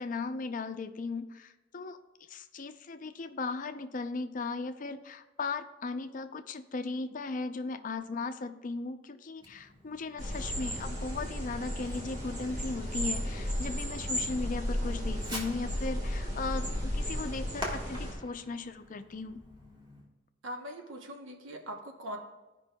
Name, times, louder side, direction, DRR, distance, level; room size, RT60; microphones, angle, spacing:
voice 1, 0.0-2.0 2.3-19.4, left 3 dB, 45° left, 9 dB, 0.5 m, -37 dB
Fireworks, 9.4-20.1, equal, 25° right, 1.6 m, -47 dB
sound 1, 10.2-18.1, equal, 40° right, 1.5 m, -34 dB
voice 2, 20.4-22.2, equal, 85° right, 3 dB, 0.9 m, -41 dB
14.5 x 5.2 x 2.2 m, 1.1 s
head